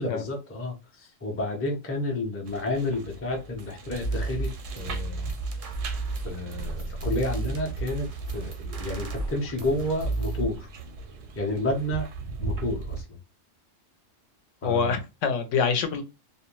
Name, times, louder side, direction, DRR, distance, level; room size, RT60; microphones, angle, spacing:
voice 1, 0.0-4.5 4.8-5.3 6.2-10.7 11.4-12.1 12.4-13.0 14.6-15.0, left 1 dB, 20° left, 2 dB, 0.4 m, -30 dB
sound 1, 2.5-13.0, right 4 dB, 80° right, 0.9 m, -39 dB
sound 2, 3.6-3.7 4.0-10.4, right 2 dB, 55° right, 0.6 m, -32 dB
voice 2, 14.6-16.0, left 5 dB, 75° left, 8 dB, 0.9 m, -25 dB
2.5 x 2.1 x 2.9 m, 0.25 s
omnidirectional pair, 1.3 m